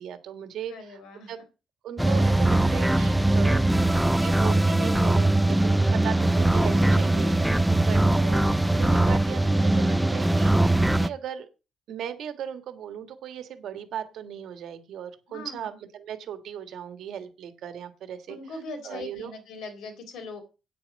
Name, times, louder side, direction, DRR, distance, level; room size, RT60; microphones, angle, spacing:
voice 1, 0.0-1.0 1.3-1.4 1.8-3.7 4.2-11.5 11.9-19.3, right 9 dB, 70° right, 9 dB, 1.6 m, -38 dB
voice 2, 0.7-1.3 6.7-7.2 15.3-15.7 18.3-20.4, left 3 dB, 85° left, 7 dB, 3.9 m, -41 dB
sound 1, 2.0-11.1, right 1 dB, 5° right, 0.5 m, -21 dB
9.0 x 8.9 x 5.2 m, 0.31 s
cardioid pair, 150°, 0 cm